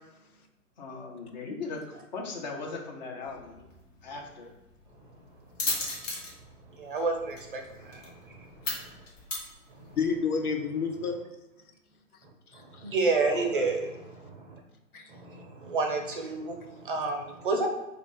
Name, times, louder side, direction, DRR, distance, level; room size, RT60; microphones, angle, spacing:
voice 1, 0.8-1.8 2.1-3.7 4.0-4.5, left 4 dB, 30° left, 0 dB, 0.6 m, -38 dB
sound 1, 3.3-10.2, left 3 dB, 55° left, 1.2 m, -38 dB
voice 2, 6.7-9.0 9.7-10.0 12.5-14.6 15.1-17.7, right 3 dB, 35° right, 3 dB, 0.5 m, -31 dB
voice 3, 9.9-11.2 12.5-12.8 13.3-13.7 14.9-15.0, left 5 dB, 75° left, 4 dB, 0.7 m, -30 dB
3.2 x 2.4 x 3.7 m, 0.98 s
figure-of-eight pair, 120°, 44 cm